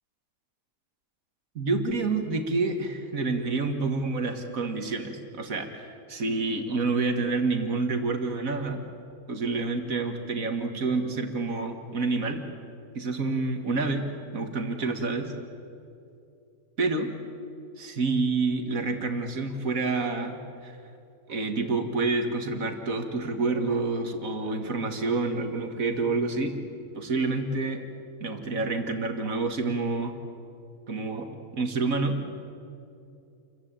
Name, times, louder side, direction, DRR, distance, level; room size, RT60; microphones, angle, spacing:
voice 1, 1.6-8.8 9.3-12.4 13.0-14.0 14.3-15.3 16.8-17.1 17.8-20.8 21.3-26.6 27.0-27.8 28.2-30.1 30.9-32.2, right 3 dB, 65° right, 6 dB, 2.2 m, -28 dB
28.5 x 15.0 x 8.9 m, 2.6 s
omnidirectional pair, 1.6 m